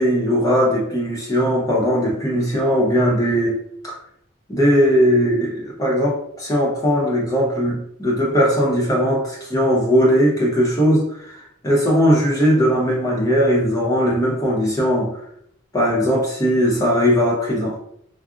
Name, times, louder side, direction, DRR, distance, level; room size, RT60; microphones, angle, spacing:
voice 1, 0.0-3.6 3.8-4.0 4.5-15.2 15.7-17.8, equal, 15° left, -3 dB, 0.7 m, -19 dB
3.6 x 2.0 x 2.4 m, 0.72 s
head